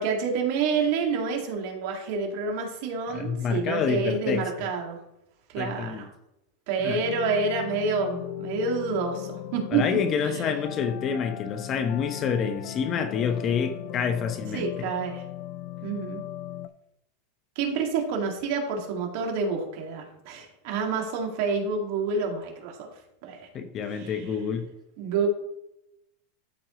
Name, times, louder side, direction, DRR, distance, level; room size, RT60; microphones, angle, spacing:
voice 1, 0.0-5.0 5.5-6.1 6.7-9.8 10.2-10.5 14.5-15.2 15.8-16.2 17.6-22.9 23.2-23.5 23.9-24.2 25.0-25.3, right 5 dB, 55° right, 1 dB, 2.0 m, -28 dB
voice 2, 3.1-4.5 5.6-6.1 6.8-7.0 9.7-14.7 23.5-24.7, left 6 dB, 35° left, 8 dB, 0.9 m, -28 dB
sound 1, 6.8-16.7, left 12 dB, 55° left, 0.5 m, -38 dB
12.5 x 4.4 x 3.0 m, 0.85 s
supercardioid pair, 130°, 0 cm